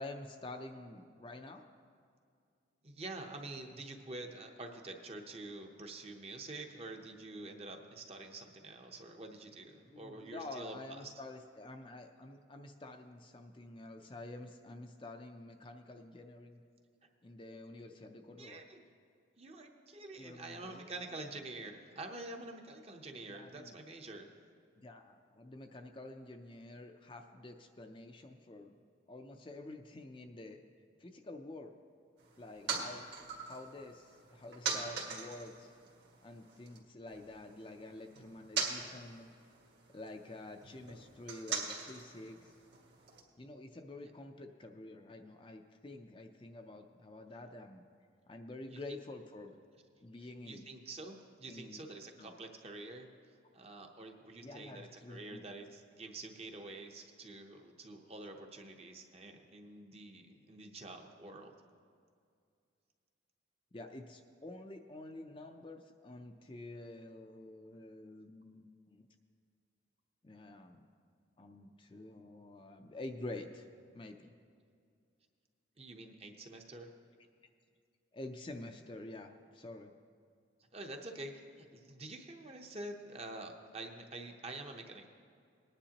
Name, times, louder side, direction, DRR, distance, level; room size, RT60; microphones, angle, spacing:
voice 1, 0.0-1.6 9.8-16.6 17.2-18.6 20.2-20.9 23.3-23.8 24.8-28.7 29.1-30.6 31.0-31.7 32.4-33.1 33.4-35.7 36.2-39.3 39.9-42.5 43.4-47.9 48.3-49.5 50.0-50.7 51.5-51.9 52.2-52.3 54.4-55.4 63.7-69.1 70.2-70.8 71.4-73.7 73.9-74.3 78.1-79.9, left 2 dB, 25° left, 4 dB, 0.5 m, -48 dB
voice 2, 2.8-11.1 18.4-18.8 19.4-24.3 48.7-49.0 50.2-53.1 53.5-61.5 75.8-76.9 80.7-85.1, right 2 dB, 30° right, 3 dB, 0.8 m, -47 dB
sound 1, 32.2-36.8 37.1-43.2, right 5 dB, 60° right, 1.7 m, -42 dB
19.5 x 9.9 x 2.9 m, 2.3 s
head